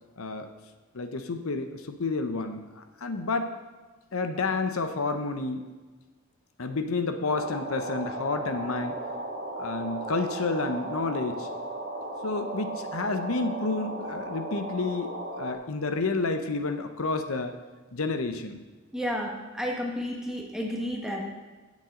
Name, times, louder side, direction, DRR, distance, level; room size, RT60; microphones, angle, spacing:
voice 1, 0.2-0.5 0.9-3.5 4.1-5.6 6.6-9.0 9.6-11.5 12.2-17.6 17.9-18.6, left 3 dB, 80° left, 8 dB, 0.8 m, -30 dB
sound 1, 7.2-15.5, right 1 dB, 45° right, 2.1 m, -36 dB
voice 2, 18.9-21.3, equal, 5° right, -1 dB, 1.4 m, -31 dB
17.0 x 7.4 x 3.8 m, 1.3 s
head